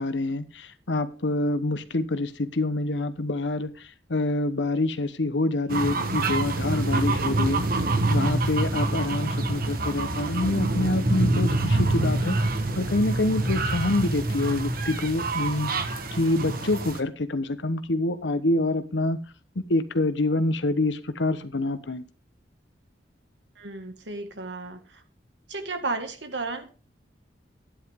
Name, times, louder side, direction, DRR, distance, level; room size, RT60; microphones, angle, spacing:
voice 1, 0.0-7.6 8.1-12.4 12.8-15.7 16.1-19.2 19.6-22.0, left 2 dB, 85° left, 1.0 m, -26 dB
sound 1, 5.7-17.0, right 2 dB, 55° right, 1.3 m, -26 dB
voice 2, 23.6-25.0 25.5-26.7, right 3 dB, 85° right, 1.9 m, -33 dB
12.5 x 10.0 x 3.6 m
head